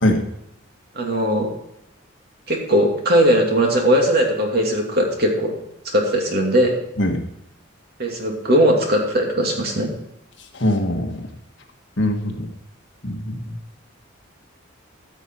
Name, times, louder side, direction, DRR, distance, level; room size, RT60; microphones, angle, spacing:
voice 1, 0.9-1.5 2.5-5.6 5.8-6.8 8.0-9.9, equal, 50° right, 1 dB, 2.6 m, -19 dB
voice 2, 10.5-11.3 12.0-12.5 13.0-13.6, left 1 dB, 60° left, 3 dB, 1.6 m, -22 dB
14.5 x 7.3 x 4.6 m, 0.82 s
head